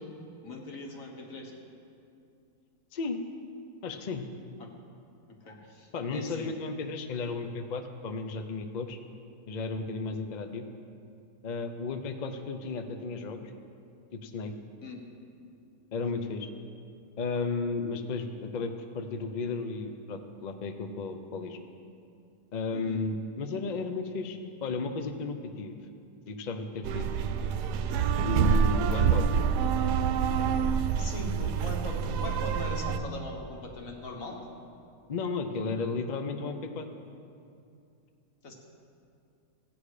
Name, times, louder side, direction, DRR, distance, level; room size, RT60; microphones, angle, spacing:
voice 1, 0.4-1.5 5.3-6.5 14.8-15.0 22.7-23.0 31.0-34.4 38.4-38.5, left 2 dB, 55° left, 1 dB, 1.8 m, -40 dB
voice 2, 3.8-4.3 5.9-9.0 9.5-10.7 11.4-13.5 14.1-14.5 15.9-16.5 17.2-21.6 22.5-25.8 26.3-27.1 28.2-29.3 35.1-36.9, left 4 dB, 70° left, 6 dB, 0.4 m, -34 dB
sound 1, 26.8-33.0, right 7 dB, 80° right, 1.1 m, -27 dB
15.5 x 8.7 x 4.9 m, 2.5 s
omnidirectional pair, 1.8 m